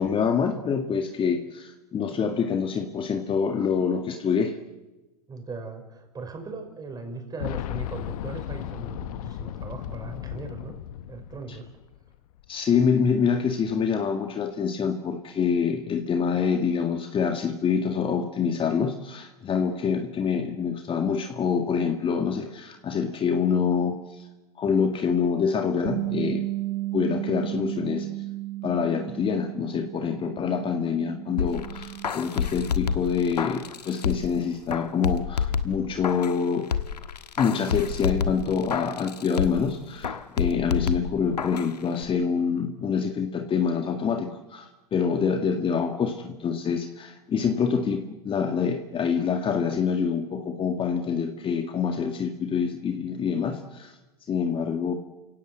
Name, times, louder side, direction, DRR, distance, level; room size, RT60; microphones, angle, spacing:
voice 1, 0.0-4.6 12.5-24.3 24.6-26.4 26.9-28.1 28.6-36.7 37.4-54.0 54.3-54.9, left 6 dB, 25° left, 5 dB, 1.9 m, -26 dB
voice 2, 5.3-10.7 11.1-11.7 16.3-16.5, right 3 dB, 20° right, 4 dB, 6.0 m, -38 dB
Boom, 7.4-12.1 12.4-12.5 13.6-13.7, left 13 dB, 65° left, 1.0 m, -35 dB
Bass guitar, 25.9-32.1, right 17 dB, 35° right, 1.8 m, -33 dB
sound 1, 31.4-34.4 34.7-36.4 36.7-39.7 40.0-41.7 42.0-42.1, left 7 dB, 90° left, 1.5 m, -29 dB
29.0 x 17.0 x 8.1 m, 1.1 s
hypercardioid pair, 100°, 20 cm